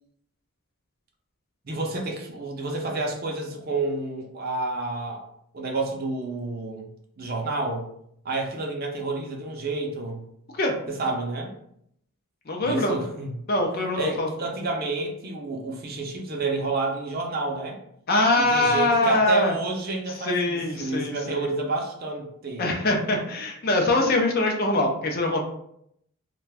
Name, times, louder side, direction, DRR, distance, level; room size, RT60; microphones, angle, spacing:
voice 1, 1.6-5.2 5.5-6.9 7.2-7.9 8.2-10.2 10.9-11.5 12.6-13.4 14.0-17.8 18.4-22.7, right 2 dB, 45° right, 1 dB, 0.5 m, -29 dB
voice 2, 12.5-13.0 13.5-14.3 18.1-19.5 20.3-21.5 22.6-25.4, left 2 dB, 45° left, 1 dB, 0.5 m, -23 dB
2.5 x 2.2 x 3.2 m, 0.72 s
head